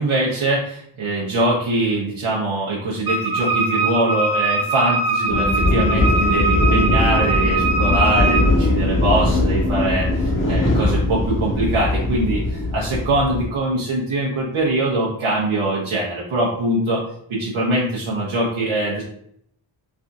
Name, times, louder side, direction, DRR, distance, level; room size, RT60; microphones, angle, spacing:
voice 1, 0.0-17.0 17.3-19.0, right 1 dB, 85° right, -5 dB, 0.8 m, -22 dB
Wind instrument woodwind instrument, 3.1-8.6, right 3 dB, 45° right, 1.1 m, -22 dB
sound 1, 5.3-13.5, left 2 dB, 25° left, 0.7 m, -20 dB
3.3 x 2.5 x 2.5 m, 0.68 s
wide cardioid pair, 80°, 48 cm